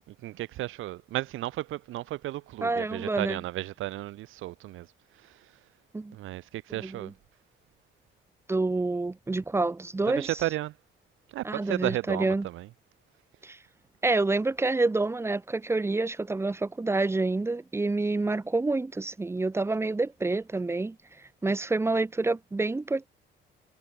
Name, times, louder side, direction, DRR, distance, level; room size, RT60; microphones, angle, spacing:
voice 1, 0.1-4.9 5.1-5.5 6.1-7.1 10.1-10.8 11.3-12.7, right 16 dB, 85° right, 1.5 m, -34 dB
voice 2, 2.6-3.4 5.9-6.2 6.8-7.1 8.5-10.3 11.4-12.5 13.4-13.6 14.0-21.0 21.4-23.1, right 3 dB, 15° right, 0.5 m, -28 dB
cardioid pair, 90°, 20 cm